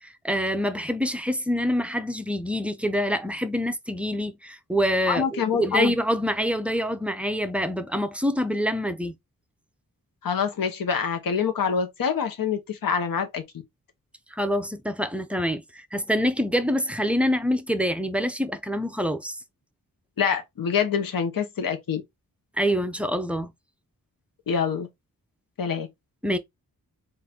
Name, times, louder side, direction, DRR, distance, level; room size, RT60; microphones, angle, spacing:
voice 1, 0.0-9.1 14.3-19.4 22.6-23.5 26.2-26.4, equal, 5° right, 0.5 m, -26 dB
voice 2, 5.1-5.9 10.2-13.4 20.2-22.0 24.5-24.9 25.6-25.9, left 6 dB, 70° left, 0.9 m, -25 dB
3.8 x 2.5 x 4.2 m
wide cardioid pair, 125°, 36 cm